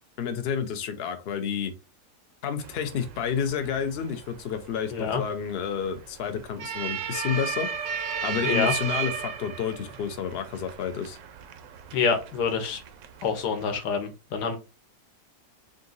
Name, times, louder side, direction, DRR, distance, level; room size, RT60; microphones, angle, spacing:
voice 1, 0.2-1.7 2.4-7.7 8.2-11.2, left 7 dB, 65° left, 8 dB, 0.6 m, -30 dB
sound 1, 2.6-13.8, right 7 dB, 70° right, 0.7 m, -35 dB
voice 2, 11.9-12.8 13.2-14.6, left 6 dB, 80° left, 6 dB, 1.4 m, -26 dB
3.8 x 2.5 x 3.8 m, 0.30 s
omnidirectional pair, 1.8 m